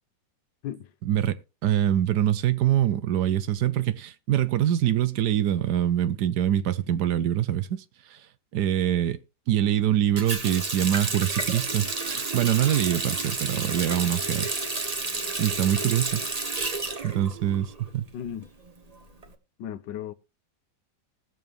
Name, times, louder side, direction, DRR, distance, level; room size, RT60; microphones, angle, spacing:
voice 1, 1.0-8.3 8.5-9.2 9.5-15.0 15.4-16.2 17.0-18.1, right 11 dB, 70° right, 1.2 m, -25 dB
Water tap faucet, 10.2-17.9 18.2-19.3, right 3 dB, 25° right, 1.0 m, -30 dB
voice 2, 18.1-18.5 19.6-20.1, left 10 dB, 85° left, 1.4 m, -35 dB
19.5 x 7.0 x 3.1 m
omnidirectional pair, 1.9 m